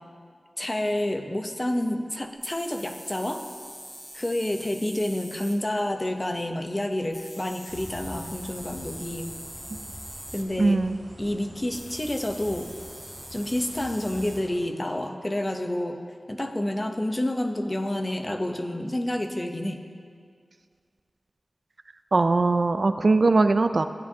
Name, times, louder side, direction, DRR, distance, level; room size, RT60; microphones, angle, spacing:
voice 1, 0.6-3.5 4.1-9.3 10.3-10.8 11.2-12.7 13.3-16.0 16.3-19.8, left 1 dB, 25° left, 4 dB, 0.7 m, -29 dB
sound 1, 2.4-5.6 7.1-10.5 11.7-14.4, equal, 5° right, 1.2 m, -43 dB
sound 2, 7.7-14.6, equal, 30° right, 2.9 m, -45 dB
voice 2, 10.6-11.0 22.1-23.9, right 3 dB, 60° right, 10 dB, 0.3 m, -20 dB
15.5 x 9.5 x 2.8 m, 2.1 s
wide cardioid pair, 90°, 0 cm